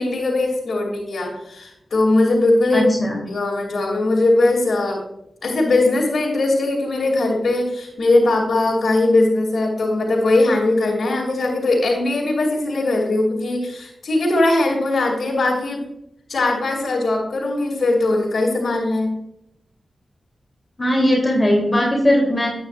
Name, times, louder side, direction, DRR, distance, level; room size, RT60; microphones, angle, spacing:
voice 1, 0.0-2.9 3.3-5.0 5.4-15.8 16.3-19.1, left 2 dB, 70° left, -3 dB, 2.6 m, -20 dB
voice 2, 2.7-3.2 20.8-22.5, equal, 25° left, -1 dB, 3.2 m, -18 dB
9.8 x 9.1 x 2.5 m, 0.79 s
cardioid pair, 40°, 0 cm